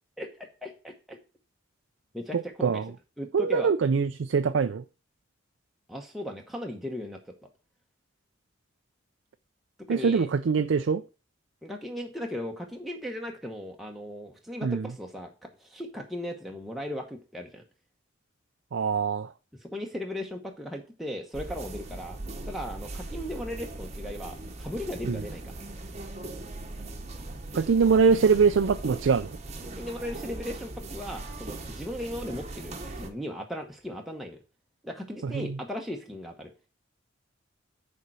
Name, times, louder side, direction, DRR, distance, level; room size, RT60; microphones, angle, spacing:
voice 1, 0.2-1.2 2.1-2.8 3.2-3.7 5.9-7.3 9.9-10.3 11.6-17.6 19.6-22.2 22.5-25.4 29.7-34.4 34.8-36.5, left 1 dB, ahead, 1.0 m, -37 dB
voice 2, 2.3-2.9 3.3-4.8 9.9-11.0 14.6-14.9 18.7-19.3 25.0-25.2 27.5-29.4 35.2-35.6, right 5 dB, 70° right, 0.4 m, -23 dB
sound 1, 21.3-33.1, right 2 dB, 35° right, 1.0 m, -39 dB
6.6 x 4.4 x 6.2 m
head